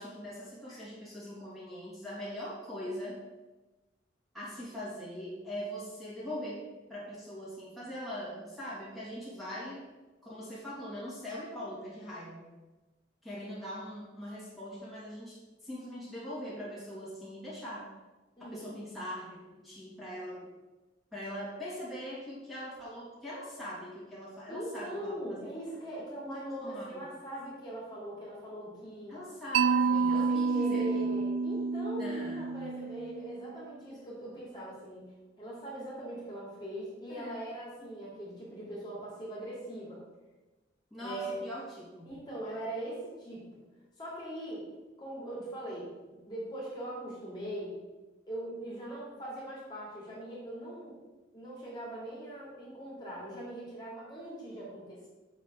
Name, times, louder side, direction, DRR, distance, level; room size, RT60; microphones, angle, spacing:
voice 1, 0.0-3.2 4.3-6.6 6.9-9.8 10.2-12.5 13.2-17.9 18.4-20.5 21.1-25.4 26.3-27.1 29.1-31.3 32.0-32.9 37.1-37.4 37.8-37.9 40.9-42.2, equal, ahead, -9 dB, 2.9 m, -42 dB
voice 2, 18.4-18.7 24.5-29.2 29.7-35.1 35.4-40.0 41.0-41.4 42.0-43.6 44.0-44.6 45.0-47.8 48.3-51.0 51.3-55.1, right 1 dB, 25° left, -6 dB, 2.8 m, -41 dB
Mallet percussion, 29.5-33.6, right 5 dB, 85° right, 0.3 m, -29 dB
7.0 x 5.7 x 6.9 m, 1.2 s
head